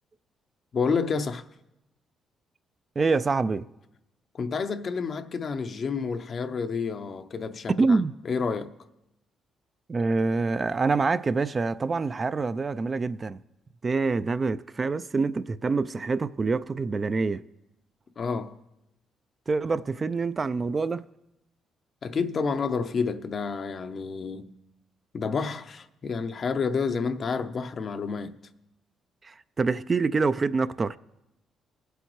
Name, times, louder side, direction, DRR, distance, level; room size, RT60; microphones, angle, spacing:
voice 1, 0.7-1.4 4.3-8.0 8.2-8.7 18.2-18.6 22.0-24.6 25.1-28.4, left 5 dB, 50° left, 0.6 m, -29 dB
voice 2, 3.0-3.6 7.7-8.1 9.9-13.4 13.8-17.4 19.5-21.0 29.2-31.0, right 4 dB, 35° right, 0.3 m, -26 dB
21.0 x 8.0 x 3.1 m
cardioid pair, 90°, 0 cm